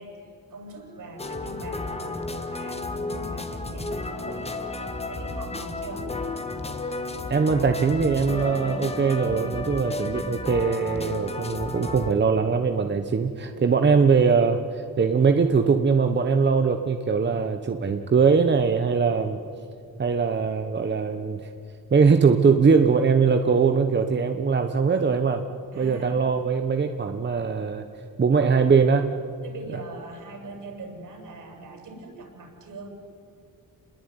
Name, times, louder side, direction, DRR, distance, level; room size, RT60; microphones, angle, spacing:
voice 1, 0.0-6.1 25.7-26.2 28.5-28.7 29.4-33.0, right 2 dB, 65° right, 2 dB, 7.9 m, -41 dB
sound 1, 1.2-12.1, left 2 dB, 20° left, 1.6 m, -32 dB
voice 2, 7.3-19.4 20.0-21.5 21.9-25.5 25.8-27.8 28.2-29.2, right 5 dB, 30° right, 7 dB, 1.1 m, -21 dB
29.5 x 21.0 x 9.7 m, 2.5 s
wide cardioid pair, 150°, 34 cm